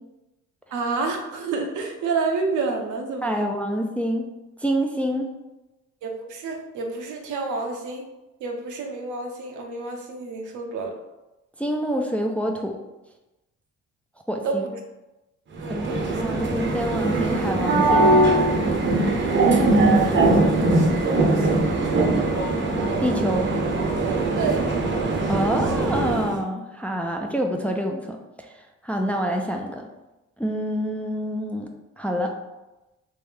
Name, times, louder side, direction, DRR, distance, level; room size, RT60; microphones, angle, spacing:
voice 1, 0.7-3.4 6.0-8.1 8.4-11.0 14.4-14.8 15.6-16.2 21.0-21.6 24.4-24.7, right 4 dB, 80° right, 3 dB, 0.7 m, -29 dB
voice 2, 3.2-4.2 4.6-5.3 11.6-12.8 14.3-14.6 15.7-18.2 23.0-23.5 25.3-29.9 30.4-31.7 32.0-32.3, equal, 5° left, 2 dB, 0.3 m, -27 dB
sound 1, 15.6-26.4, right 2 dB, 40° right, 0.7 m, -21 dB
3.4 x 2.6 x 3.3 m, 1.0 s
cardioid pair, 90°, 30 cm